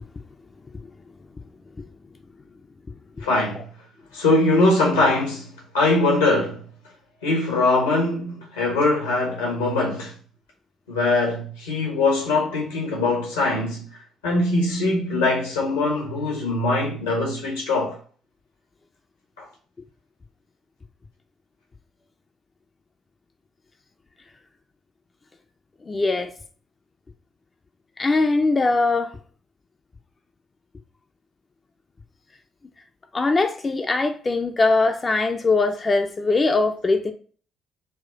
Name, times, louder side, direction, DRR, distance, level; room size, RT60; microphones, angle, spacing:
voice 1, 3.2-3.7 4.1-5.5 5.7-6.6 7.2-10.1 10.9-13.9 14.2-18.0 19.4-19.5, left 2 dB, 90° left, 1.3 m, -22 dB
voice 2, 25.8-26.3 28.0-29.2 33.1-37.1, left 3 dB, 35° left, 0.5 m, -21 dB
4.1 x 2.4 x 3.9 m
hypercardioid pair, 50°, 0 cm